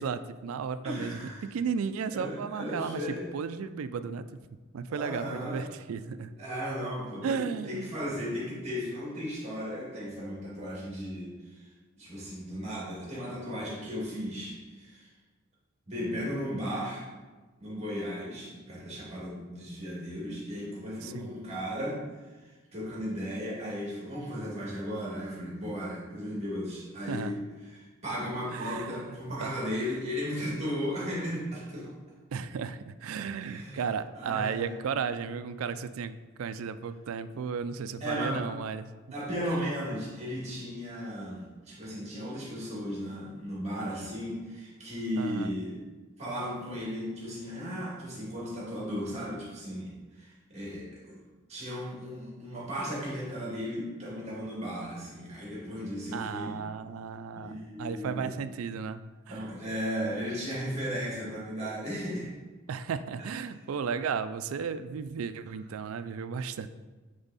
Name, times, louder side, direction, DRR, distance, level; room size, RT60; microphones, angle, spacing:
voice 1, 0.0-4.2 4.7-6.3 7.2-8.0 21.0-21.3 27.1-27.4 28.5-29.0 29.4-29.5 32.3-38.9 39.5-39.7 45.2-45.5 56.1-59.3 62.7-66.7, right 6 dB, 85° right, 12 dB, 0.4 m, -34 dB
voice 2, 0.8-1.5 2.1-3.3 4.9-5.6 6.4-11.7 12.0-15.1 15.9-17.1 17.6-22.0 22.4-27.4 27.6-31.9 33.4-33.8 34.2-34.7 38.0-38.4 39.1-45.8 46.2-51.2 51.5-56.6 57.3-58.3 59.3-62.3, equal, 30° right, -6 dB, 2.1 m, -35 dB
8.9 x 3.5 x 4.1 m, 1.3 s
head